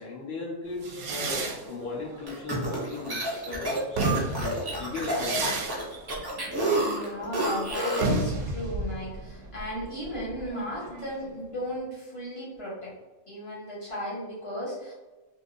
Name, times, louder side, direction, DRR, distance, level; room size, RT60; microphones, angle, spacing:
voice 1, 0.0-5.6, left 3 dB, 80° left, -4 dB, 1.4 m, -37 dB
sound 1, 0.8-3.3 3.7-11.3, right 3 dB, 65° right, 0.8 m, -33 dB
sound 2, 2.3-8.2, right 1 dB, 25° right, 0.6 m, -29 dB
voice 2, 6.6-12.9 13.3-14.9, equal, 25° left, -7 dB, 1.3 m, -35 dB
3.5 x 2.7 x 2.5 m, 1.2 s
omnidirectional pair, 1.3 m